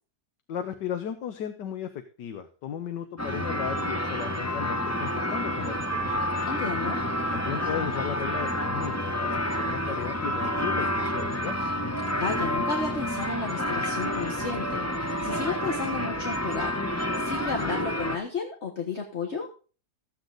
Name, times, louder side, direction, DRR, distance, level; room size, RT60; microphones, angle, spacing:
voice 1, 0.5-6.3 7.3-11.6, left 9 dB, 85° left, 8 dB, 1.6 m, -35 dB
sound 1, 3.2-18.2, equal, 15° left, 0.6 m, -29 dB
voice 2, 6.5-7.0 12.2-19.5, left 4 dB, 45° left, 3 dB, 1.6 m, -33 dB
14.5 x 8.1 x 3.9 m, 0.37 s
omnidirectional pair, 1.8 m